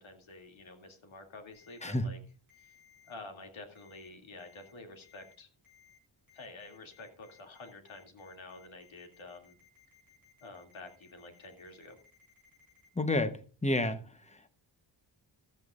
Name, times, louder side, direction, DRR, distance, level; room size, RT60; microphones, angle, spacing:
voice 1, 0.0-2.2 2.6-2.7 3.1-5.5 6.3-9.6 10.4-12.0, left 2 dB, 75° left, 2.8 m, -49 dB
Ringtone, 1.5-1.9 2.5-3.1 3.8-4.1 4.4-4.7 5.0-5.3 5.6-6.0 6.3-12.9, left 8 dB, 40° left, 7.8 m, -63 dB
voice 2, 1.8-2.1 13.0-13.3 13.6-14.0, left 1 dB, 15° left, 1.0 m, -29 dB
14.5 x 14.0 x 2.5 m
wide cardioid pair, 140°, 47 cm